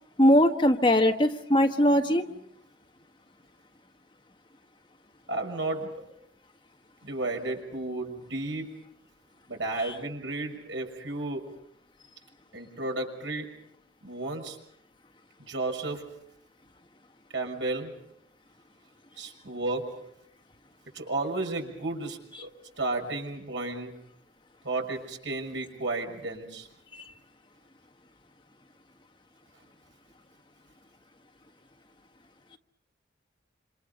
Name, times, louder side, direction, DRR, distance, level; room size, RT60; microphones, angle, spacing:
voice 1, 0.2-2.2 26.9-27.0, equal, 25° left, 5 dB, 1.5 m, -21 dB
voice 2, 5.3-6.0 7.0-8.7 9.5-11.5 12.5-13.5 14.0-14.6 15.4-16.0 17.3-18.0 19.2-19.9 20.9-22.5 22.8-23.9 24.6-26.7, right 2 dB, 85° right, 3 dB, 6.0 m, -33 dB
27.5 x 27.0 x 5.4 m, 0.74 s
head